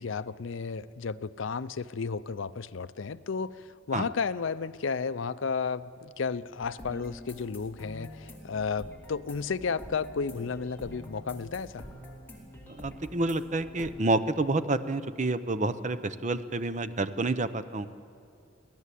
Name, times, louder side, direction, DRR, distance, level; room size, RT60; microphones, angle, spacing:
voice 1, 0.0-11.9, left 5 dB, 70° left, 14 dB, 0.5 m, -33 dB
sound 1, 6.6-14.0, left 1 dB, 10° left, 3.2 m, -47 dB
voice 2, 12.7-17.9, right 2 dB, 35° right, 12 dB, 0.8 m, -29 dB
24.5 x 16.5 x 8.4 m, 2.4 s
head